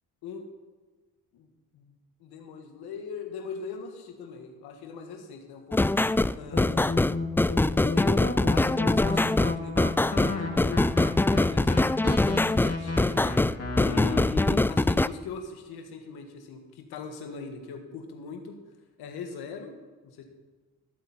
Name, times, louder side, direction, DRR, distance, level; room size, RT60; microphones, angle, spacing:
voice 1, 2.2-5.9 6.3-7.0 7.9-11.9 12.4-13.4 13.8-18.6 19.0-19.7 20.0-20.2, left 5 dB, 85° left, 5 dB, 1.7 m, -39 dB
sound 1, 5.7-15.1, left 2 dB, 5° left, 0.3 m, -23 dB
sound 2, 6.5-14.2, left 3 dB, 40° left, 2.8 m, -32 dB
20.5 x 8.4 x 4.2 m, 1.3 s
supercardioid pair, 45°, 37 cm